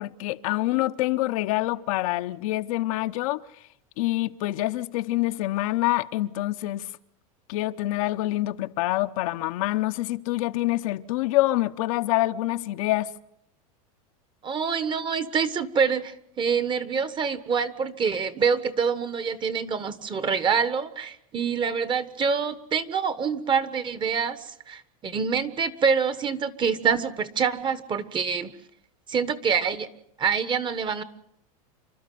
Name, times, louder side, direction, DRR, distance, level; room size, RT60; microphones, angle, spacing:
voice 1, 0.0-3.4 4.0-6.9 7.5-13.1, left 17 dB, 65° left, 0.9 m, -26 dB
voice 2, 14.4-28.5 29.1-29.9 30.2-31.0, right 6 dB, 25° right, 1.3 m, -26 dB
28.0 x 12.5 x 9.3 m
supercardioid pair, 130°, 19 cm